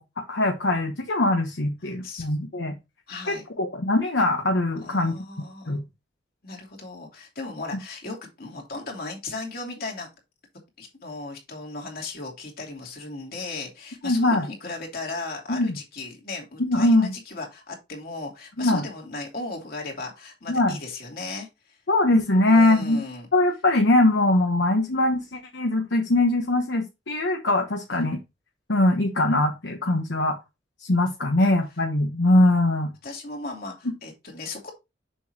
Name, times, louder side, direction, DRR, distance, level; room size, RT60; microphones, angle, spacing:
voice 1, 0.0-2.8 3.3-5.1 5.7-5.8 14.0-14.5 15.5-15.8 16.6-17.1 18.6-18.8 20.5-20.8 21.9-23.0 23.3-28.2 28.7-30.4 30.8-32.9, left 1 dB, 70° left, 3 dB, 1.1 m, -22 dB
voice 2, 1.8-2.4 3.1-3.4 4.8-5.8 6.4-10.1 10.8-21.8 22.5-23.3 27.9-28.1 31.4-31.5 33.0-34.7, left 3 dB, 55° left, 0 dB, 2.8 m, -36 dB
6.9 x 6.1 x 2.9 m, 0.24 s
head